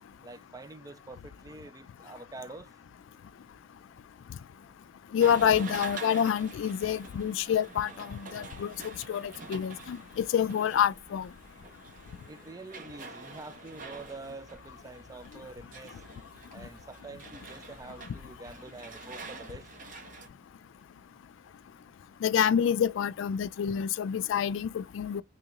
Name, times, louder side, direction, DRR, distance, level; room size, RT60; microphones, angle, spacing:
voice 1, 0.2-2.7 12.3-16.0 16.5-19.7, right 3 dB, 20° right, 0.3 m, -46 dB
voice 2, 5.1-11.3 22.2-25.2, left 8 dB, 90° left, 0.3 m, -27 dB
sound 1, 5.2-20.3, right 3 dB, 45° right, 0.8 m, -46 dB
3.6 x 2.9 x 2.9 m
head